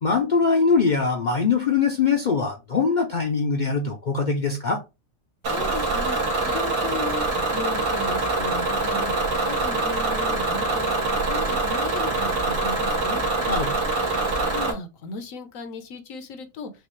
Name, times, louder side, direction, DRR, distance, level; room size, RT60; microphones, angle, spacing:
voice 1, 0.0-4.8 13.5-13.7, left 5 dB, 50° left, 0.6 m, -22 dB
Bus / Engine, 5.4-14.7, right 2 dB, 80° right, 1.8 m, -24 dB
voice 2, 5.5-6.2 6.4-9.1 9.5-13.2 14.5-16.7, left 4 dB, 80° left, 1.2 m, -36 dB
6.2 x 2.4 x 3.1 m
omnidirectional pair, 1.4 m